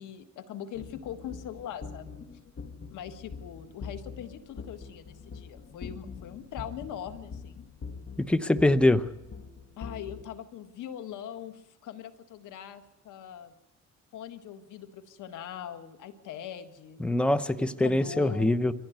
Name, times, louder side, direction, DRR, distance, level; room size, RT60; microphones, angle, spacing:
voice 1, 0.0-2.1 2.9-7.6 9.8-13.5 14.1-17.0 17.6-18.5, left 9 dB, 85° left, 9 dB, 1.8 m, -41 dB
sound 1, 0.7-10.2, left 5 dB, 45° left, 2.2 m, -44 dB
voice 2, 8.2-9.1 17.0-18.7, left 1 dB, 5° left, 13 dB, 0.9 m, -23 dB
24.0 x 15.5 x 9.5 m, 0.92 s
cardioid pair, 90°, 30 cm